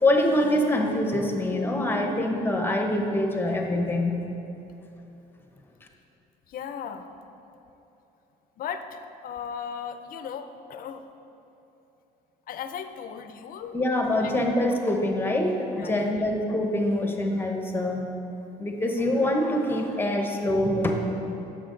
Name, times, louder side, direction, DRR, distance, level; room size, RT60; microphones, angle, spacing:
voice 1, 0.0-4.3 13.7-18.0 18.6-20.9, left 1 dB, 10° left, 2 dB, 1.0 m, -25 dB
voice 2, 6.5-7.1 8.6-11.0 12.5-13.8 14.2-14.3 14.6-14.7 15.8-16.2, left 7 dB, 55° left, 9 dB, 0.6 m, -37 dB
9.6 x 6.8 x 3.9 m, 3.0 s
cardioid pair, 110°, 17 cm